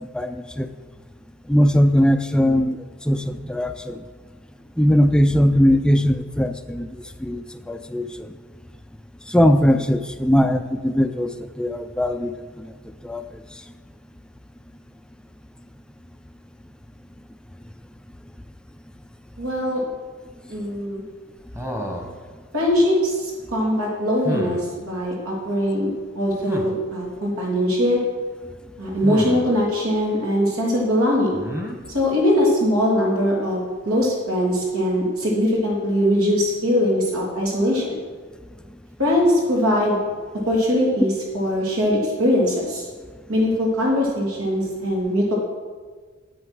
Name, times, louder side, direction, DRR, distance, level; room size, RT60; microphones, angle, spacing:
voice 1, 0.1-0.7 1.5-2.8 3.1-3.9 4.8-6.9 7.2-8.1 9.3-12.3 13.0-13.2, equal, 5° left, 9 dB, 0.3 m, -19 dB
voice 2, 19.4-19.8 20.5-21.0 22.5-25.9 26.1-28.0 28.8-31.4 31.9-38.0 39.0-40.0 40.4-42.8 43.3-45.3, equal, 85° right, -2 dB, 3.2 m, -21 dB
sound 1, 21.5-22.2 24.2-24.7 26.4-26.7 29.0-29.5 31.3-31.8, equal, 10° right, 1.1 m, -29 dB
8.8 x 7.9 x 6.3 m, 1.5 s
head